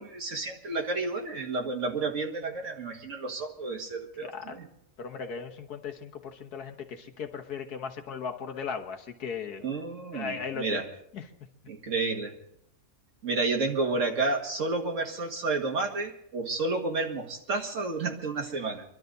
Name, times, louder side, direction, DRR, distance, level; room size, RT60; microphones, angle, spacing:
voice 1, 0.0-4.7 9.6-10.8 11.7-12.3 13.2-18.8, right 3 dB, 55° right, 1 dB, 2.2 m, -31 dB
voice 2, 4.2-4.6 5.0-9.7 10.1-10.8 11.1-11.3, left 6 dB, 90° left, 4 dB, 1.9 m, -37 dB
25.0 x 12.0 x 4.0 m, 0.73 s
omnidirectional pair, 1.6 m